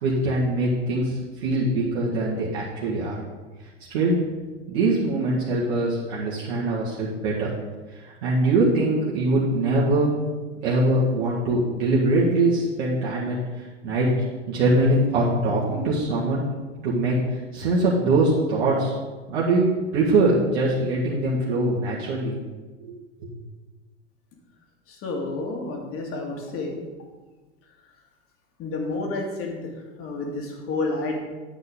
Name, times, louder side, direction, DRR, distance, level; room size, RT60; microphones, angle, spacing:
voice 1, 0.0-3.2 3.9-4.2 4.7-7.5 7.9-10.1 10.6-14.1 14.5-16.4 16.8-18.9 19.3-22.4 22.8-22.9 23.2-23.3, right 2 dB, 60° right, -7 dB, 2.0 m, -23 dB
voice 2, 24.9-26.7 28.6-31.2, left 3 dB, 35° left, 1 dB, 2.4 m, -30 dB
10.5 x 8.0 x 3.8 m, 1.3 s
figure-of-eight pair, 85°, 36 cm